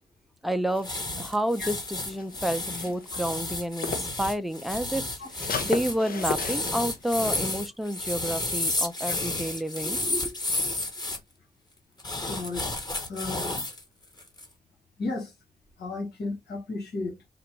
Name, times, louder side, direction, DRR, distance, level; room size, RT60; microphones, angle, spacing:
voice 1, 0.4-0.9 1.2-5.0 5.6-10.3, equal, ahead, 0.6 m, -29 dB
sound 1, 0.7-4.2 4.6-7.3, left 5 dB, 60° left, 0.8 m, -37 dB
sound 2, 0.8-11.2 12.0-13.8 14.2-14.5, left 2 dB, 25° left, 1.1 m, -31 dB
voice 2, 12.2-12.8 13.1-13.6 15.0-15.3 15.8-17.2, left 3 dB, 85° left, 1.8 m, -34 dB
3.9 x 2.5 x 4.5 m
cardioid pair, 85°, 17 cm